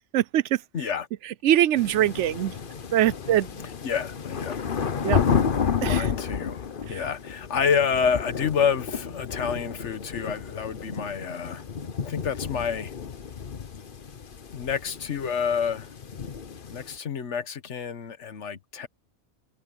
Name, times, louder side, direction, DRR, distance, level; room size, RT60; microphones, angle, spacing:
voice 1, 0.7-1.1 3.8-4.6 5.8-11.6 12.0-12.9 14.5-15.9 16.7-18.9, left 6 dB, 85° left, 1.5 m, -28 dB
voice 2, 1.4-2.5 2.9-3.5 5.0-5.2 5.8-6.1 6.9-7.0, right 12 dB, 85° right, 0.9 m, -22 dB
sound 1, 1.8-17.0, left 6 dB, 50° left, 1.1 m, -31 dB
omnidirectional pair, 1.2 m